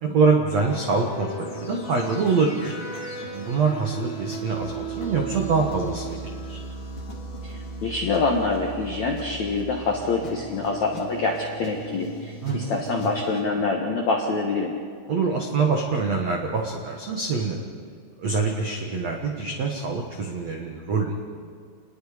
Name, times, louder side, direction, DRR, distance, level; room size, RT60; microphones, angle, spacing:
voice 1, 0.0-2.7 3.3-6.2 6.5-6.6 12.4-12.6 15.1-17.7 18.2-21.1, right 4 dB, 80° right, 1 dB, 1.5 m, -24 dB
sound 1, 0.6-13.4, right 3 dB, 40° left, 2.0 m, -36 dB
voice 2, 7.4-14.7, left 3 dB, 70° left, 1 dB, 1.7 m, -26 dB
29.0 x 20.5 x 5.1 m, 2.1 s
omnidirectional pair, 5.7 m